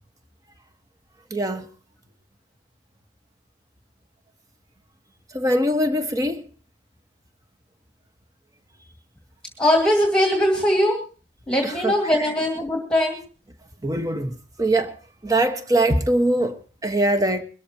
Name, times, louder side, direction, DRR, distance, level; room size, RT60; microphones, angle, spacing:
voice 1, 1.3-1.7 5.3-6.4 11.6-11.9 12.2-12.3 13.8-14.9 15.2-16.5 16.8-17.4, right 1 dB, 20° right, 1.3 m, -22 dB
voice 2, 9.6-11.0 11.5-13.2, left 1 dB, 5° left, 2.2 m, -20 dB
22.5 x 13.5 x 2.9 m
head